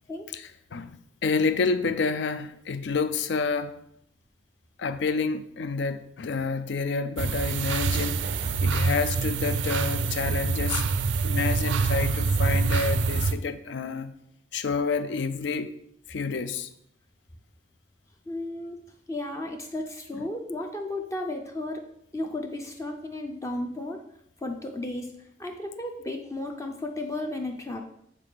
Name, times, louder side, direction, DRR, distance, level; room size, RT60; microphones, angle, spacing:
voice 1, 0.3-1.0 1.2-3.8 4.8-10.8 11.2-14.1 14.5-15.7 16.1-16.7, left 4 dB, 70° left, 0.4 m, -29 dB
sound 1, 7.2-13.3, right 4 dB, 90° right, 0.4 m, -26 dB
voice 2, 18.3-18.8 19.1-21.8 22.1-24.0 24.4-25.1 25.4-27.8, left 1 dB, 15° left, 0.4 m, -34 dB
7.4 x 4.1 x 3.4 m
head